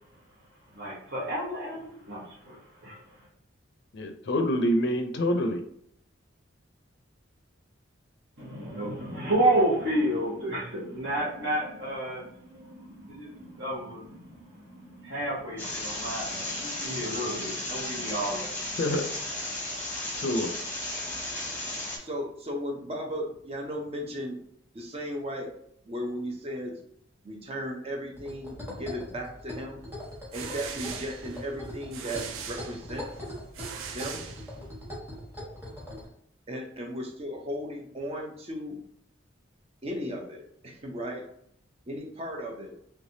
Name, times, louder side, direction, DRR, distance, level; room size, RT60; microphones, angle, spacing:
voice 1, 0.7-3.3 8.4-18.8, right 1 dB, 55° right, -7 dB, 1.0 m, -31 dB
voice 2, 3.9-5.6 18.8-19.0 20.2-20.5, left 1 dB, 55° left, 5 dB, 0.4 m, -26 dB
sound 1, 15.6-22.0, left 2 dB, 10° left, 0.9 m, -34 dB
voice 3, 22.0-24.4 24.7-25.5 25.8-26.8 27.2-29.8 30.3-33.1 33.9-34.3 36.5-38.8 39.8-41.3 41.9-42.8, equal, 30° right, 2 dB, 0.6 m, -36 dB
sound 2, 28.1-36.1, left 1 dB, 10° right, 1.2 m, -41 dB
sound 3, 30.0-34.9, right 7 dB, 85° right, 0.4 m, -41 dB
3.3 x 3.2 x 2.7 m, 0.69 s
head